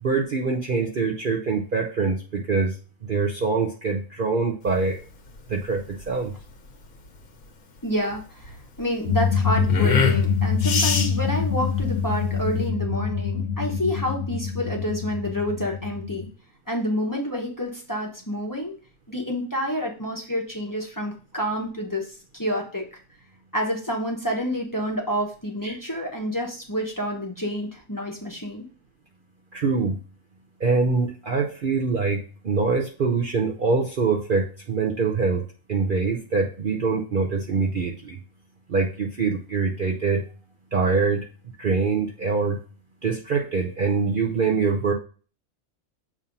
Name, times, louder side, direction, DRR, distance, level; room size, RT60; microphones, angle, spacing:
voice 1, 0.0-2.8 3.0-5.0 5.5-6.4 25.6-25.8 29.5-30.0 30.6-35.4 35.7-38.2 38.7-40.2 40.7-41.3 41.6-42.6 43.0-44.9, right 4 dB, 45° right, 1 dB, 0.7 m, -24 dB
sound 1, 4.6-12.7, left 5 dB, 85° left, 1.4 m, -29 dB
voice 2, 7.8-16.3 16.7-18.7 19.1-22.8 23.5-28.6, equal, 15° left, 0 dB, 0.9 m, -28 dB
sound 2, 9.1-16.3, left 6 dB, 65° left, 1.0 m, -25 dB
7.4 x 2.8 x 5.3 m, 0.38 s
omnidirectional pair, 1.4 m